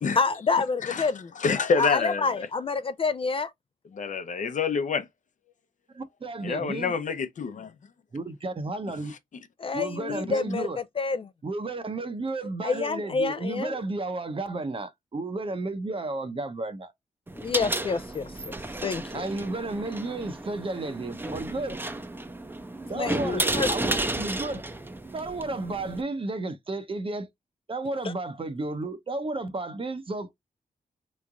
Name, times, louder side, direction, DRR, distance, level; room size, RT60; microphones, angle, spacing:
voice 1, 0.2-3.5 9.6-11.3 12.6-13.8 17.4-18.5 18.8-19.2 22.9-23.7 28.0-28.1, left 4 dB, 40° left, 0.4 m, -28 dB
voice 2, 1.4-2.3 3.9-5.1 6.4-7.7, left 5 dB, 60° left, 0.7 m, -27 dB
voice 3, 5.9-6.9 8.1-9.1 9.7-10.8 11.4-16.9 19.1-21.8 22.9-24.6 25.1-27.3 27.7-30.3, right 2 dB, 40° right, 0.8 m, -32 dB
sound 1, 17.3-26.0, right 2 dB, 15° right, 0.6 m, -32 dB
3.4 x 3.2 x 2.4 m
cardioid pair, 60°, 14 cm